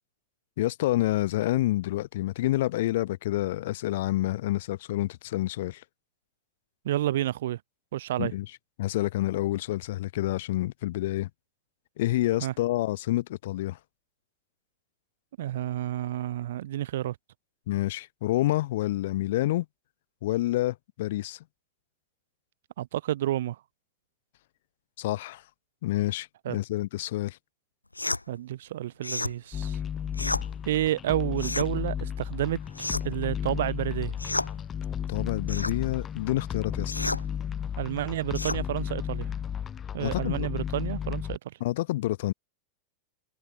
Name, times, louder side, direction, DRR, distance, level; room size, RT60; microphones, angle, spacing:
voice 1, 0.6-5.8 8.2-8.5 8.8-11.3 12.0-13.8 17.7-19.7 20.2-21.4 25.0-25.4 25.8-27.4 35.1-36.9 40.0-40.5 41.6-42.3, left 16 dB, 55° left, 3.6 m, -28 dB
voice 2, 6.8-7.6 7.9-8.3 12.4-12.5 15.4-17.1 22.8-23.6 26.4-26.6 28.3-29.8 30.6-32.6 33.0-34.1 37.8-39.3 39.9-41.5, right 13 dB, 60° right, 1.5 m, -30 dB
sound 1, 28.0-28.2 29.0-29.4 30.1-30.5 31.4-31.7 32.7-33.2 34.2-34.5 35.5-35.8 36.9-37.2 38.3-38.6, left 2 dB, 85° left, 4.6 m, -31 dB
sound 2, 29.5-41.4, left 8 dB, 25° left, 5.8 m, -33 dB
figure-of-eight pair, 90°, 0 cm